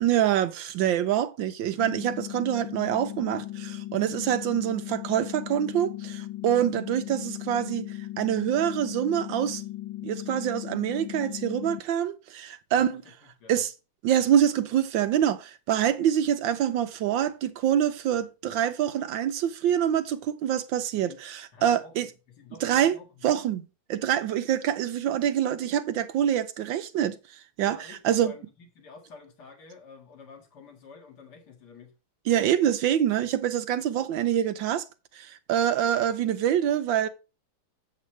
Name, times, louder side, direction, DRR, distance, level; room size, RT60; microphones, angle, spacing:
voice 1, 0.0-9.6 10.0-13.0 13.5-13.7 14.0-22.1 22.6-23.0 23.2-23.6 23.9-27.8 28.0-28.3 32.3-34.8 35.1-37.1, right 10 dB, 75° right, 1.2 m, -25 dB
sound 1, 1.8-11.8, left 14 dB, 75° left, 1.5 m, -37 dB
voice 2, 12.7-13.6 21.0-21.2 21.5-21.9 22.3-23.2 27.6-31.9, left 5 dB, 50° left, 2.2 m, -49 dB
8.1 x 7.7 x 3.2 m
omnidirectional pair, 2.4 m